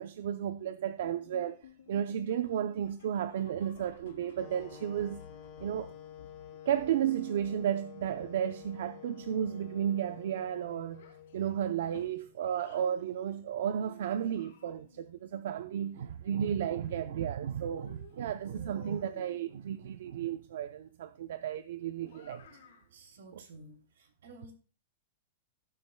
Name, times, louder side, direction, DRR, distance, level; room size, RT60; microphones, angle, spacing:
voice 1, 0.0-1.6 1.9-5.2 5.6-5.9 6.7-11.1 11.3-22.5, right 9 dB, 60° right, 0.5 m, -33 dB
sound 1, 1.0-10.1 10.4-10.7 11.0-11.1 11.6-11.7 12.3-12.4, left 8 dB, 75° left, 3.6 m, -57 dB
sound 2, 4.3-12.4, left 10 dB, 25° left, 1.8 m, -50 dB
Child speech kid speaking, 10.9-12.9 13.8-15.1 16.2-17.4 17.7-19.5 22.0-22.9, left 7 dB, 60° left, 3.2 m, -56 dB
voice 2, 22.9-24.5, right 2 dB, 80° right, 2.9 m, -53 dB
17.0 x 7.5 x 2.2 m
supercardioid pair, 180°, 0 cm